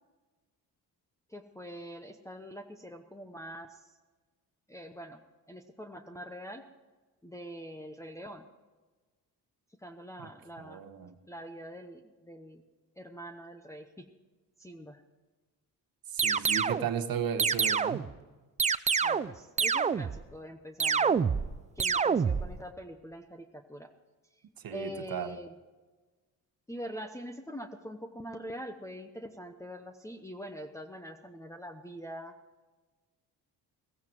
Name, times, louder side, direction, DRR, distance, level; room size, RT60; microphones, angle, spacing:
voice 1, 1.3-4.0 4.7-5.2 5.5-6.6 7.2-8.5 9.8-10.8 11.3-12.6 13.0-14.1 14.6-15.0 19.0-21.4 21.8-23.9 24.3-24.4 24.7-25.5 26.7-32.3, equal, 10° left, 2 dB, 0.9 m, -44 dB
voice 2, 10.6-11.1 16.1-18.1 24.6-25.4, right 8 dB, 60° right, 9 dB, 1.2 m, -35 dB
sound 1, 16.2-16.9 17.4-18.1 18.6-19.3 19.6-20.2 20.8-21.5 21.8-22.5, right 6 dB, 20° right, 0.3 m, -27 dB
15.5 x 15.5 x 4.6 m, 1.3 s
cardioid pair, 110°, 40 cm